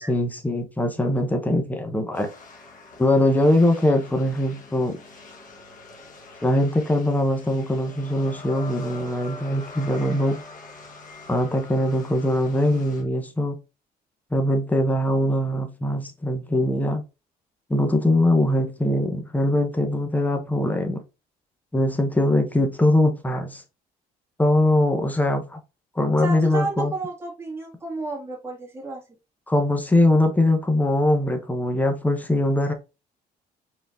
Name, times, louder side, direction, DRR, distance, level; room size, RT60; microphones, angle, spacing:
voice 1, 0.0-2.3 3.0-5.0 6.4-10.4 11.3-13.6 14.3-17.0 17.7-21.0 21.7-23.6 24.4-25.6 26.0-26.9 29.5-32.7, left 1 dB, 10° left, 0.9 m, -22 dB
sound 1, 2.1-13.0, left 3 dB, 50° left, 1.4 m, -44 dB
voice 2, 26.2-29.0, right 3 dB, 15° right, 2.1 m, -31 dB
4.8 x 3.9 x 2.6 m
cardioid pair, 110°, 17 cm